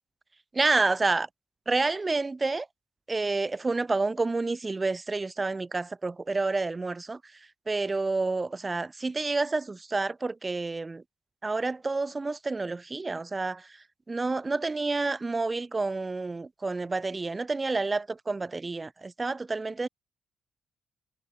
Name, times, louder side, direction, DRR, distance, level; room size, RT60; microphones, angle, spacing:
voice 1, 0.5-1.3 1.7-2.7 3.1-7.2 7.7-11.0 11.4-13.6 14.1-19.9, right 3 dB, 25° right, 2.9 m, -29 dB
cardioid pair, 90°, 0 cm